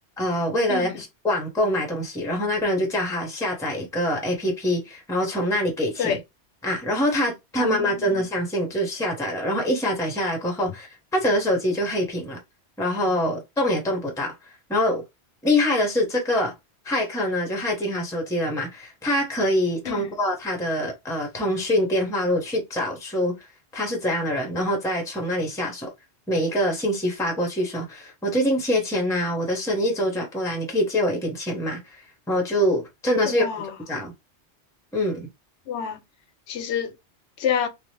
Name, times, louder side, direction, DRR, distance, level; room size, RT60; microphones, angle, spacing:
voice 1, 0.2-6.2 6.6-12.4 12.8-14.3 14.7-15.0 15.4-16.5 16.8-23.3 23.7-25.9 26.3-32.0 32.3-33.5 33.9-34.1 34.9-35.3, left 1 dB, 5° left, 0.8 m, -25 dB
voice 2, 0.7-1.0 6.0-6.2 7.6-8.2 19.9-20.1 33.2-33.7 35.7-36.0 36.5-36.9 37.4-37.7, left 8 dB, 85° left, 0.9 m, -28 dB
2.8 x 2.3 x 3.2 m
omnidirectional pair, 1.1 m